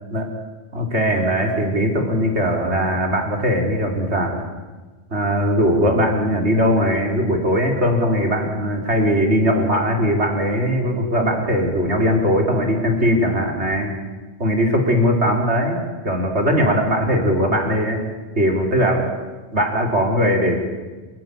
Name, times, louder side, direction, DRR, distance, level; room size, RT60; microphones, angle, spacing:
voice 1, 0.7-4.4 5.1-13.9 14.4-15.8 16.0-18.0 18.4-19.1 19.5-20.6, equal, 70° right, 1 dB, 4.3 m, -19 dB
27.5 x 15.0 x 9.9 m, 1.3 s
omnidirectional pair, 1.2 m